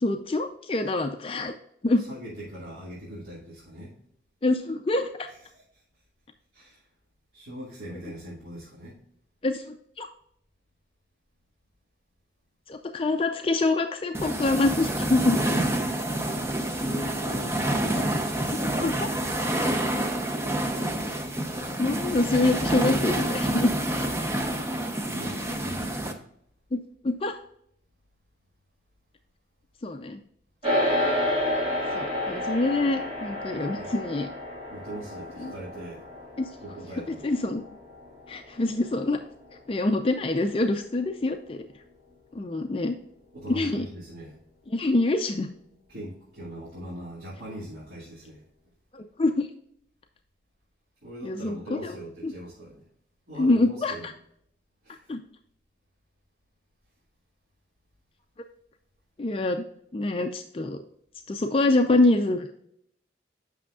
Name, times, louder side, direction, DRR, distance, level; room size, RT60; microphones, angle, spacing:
voice 1, 0.0-1.5 1.8-2.0 4.4-5.3 9.4-10.1 12.7-15.4 18.5-19.1 21.8-23.7 26.7-27.3 29.8-30.2 31.9-34.3 35.4-35.5 36.4-36.5 37.2-37.6 38.3-39.2 39.7-41.6 42.3-42.9 43.5-43.9 44.7-45.5 48.9-49.5 51.2-52.0 52.2-52.3 53.4-54.1 54.9-55.2 59.2-59.6 59.9-60.8 61.3-62.6, left 2 dB, 30° left, 5 dB, 0.4 m, -25 dB
voice 2, 2.0-4.0 5.5-5.8 6.5-6.9 7.3-9.0 15.4-16.0 16.4-18.2 24.5-26.2 33.7-33.9 34.7-36.0 36.6-37.3 43.3-44.4 45.9-48.4 51.0-52.9 53.3-54.1 54.8-55.1, right 1 dB, 65° right, -8 dB, 2.2 m, -41 dB
sound 1, 14.1-26.1, right 1 dB, 15° right, 0.6 m, -28 dB
sound 2, 30.6-40.1, left 1 dB, 30° right, 1.9 m, -31 dB
8.4 x 6.2 x 2.4 m, 0.71 s
head